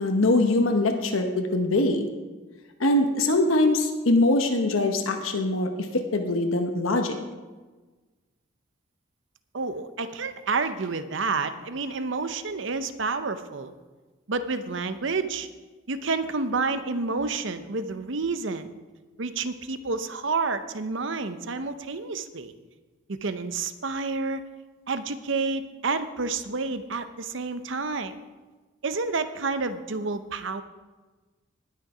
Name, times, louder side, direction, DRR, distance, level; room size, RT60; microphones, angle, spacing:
voice 1, 0.0-2.1 2.8-7.2, left 2 dB, 85° left, 4 dB, 1.0 m, -23 dB
voice 2, 9.5-13.7 14.3-15.5 15.9-18.8 19.2-22.5 23.1-24.4 24.9-28.2 28.8-30.6, right 4 dB, 65° right, 11 dB, 0.7 m, -29 dB
19.0 x 6.6 x 4.9 m, 1.3 s
head